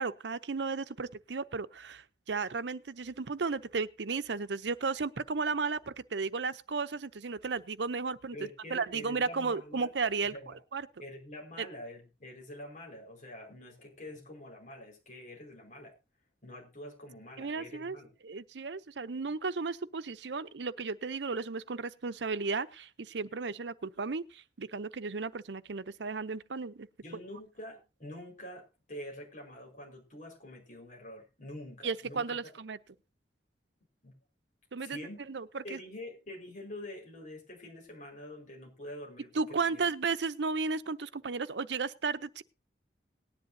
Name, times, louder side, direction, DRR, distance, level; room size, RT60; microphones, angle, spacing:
voice 1, 0.0-8.4 8.7-10.3 10.7-10.8 11.6-11.7 17.4-18.0 18.2-26.9 31.8-32.8 34.7-35.0 35.3-35.4 35.7-35.8 39.3-42.4, right 4 dB, 85° right, 0.7 m, -34 dB
voice 2, 8.3-9.9 10.2-10.6 11.0-15.9 16.4-18.1 27.0-32.4 34.0-34.1 34.8-35.3 35.6-39.4 39.7-39.8, left 1 dB, 45° left, 5.1 m, -46 dB
19.0 x 10.5 x 2.8 m
head